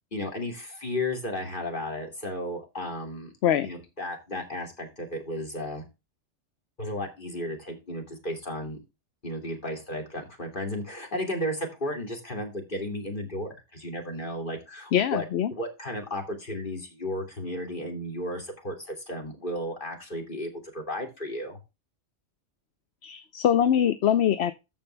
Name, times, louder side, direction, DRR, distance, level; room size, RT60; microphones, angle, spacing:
voice 1, 0.1-3.3 3.6-5.8 6.8-8.8 9.2-15.2 15.5-21.6, left 1 dB, 45° left, 3 dB, 2.8 m, -34 dB
voice 2, 14.9-15.5 23.0-24.5, left 9 dB, 65° left, 13 dB, 0.9 m, -23 dB
14.0 x 5.4 x 3.3 m, 0.26 s
omnidirectional pair, 1.2 m